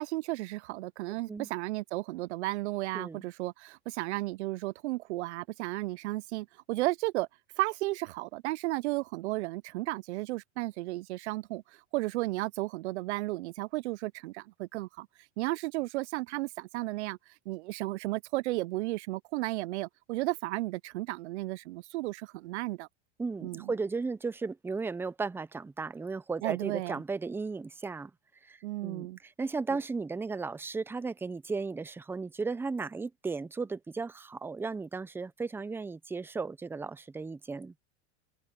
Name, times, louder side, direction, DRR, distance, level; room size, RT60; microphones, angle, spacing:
voice 1, 0.0-7.3 7.6-11.6 11.9-15.1 15.4-17.2 17.5-22.9 23.4-23.7 26.4-27.0 28.6-29.2, right 19 dB, 80° right, 0.5 m, -34 dB
voice 2, 23.2-28.1 28.5-28.6 28.8-37.7, right 4 dB, 5° right, 0.6 m, -35 dB
open air
supercardioid pair, 125°, 34 cm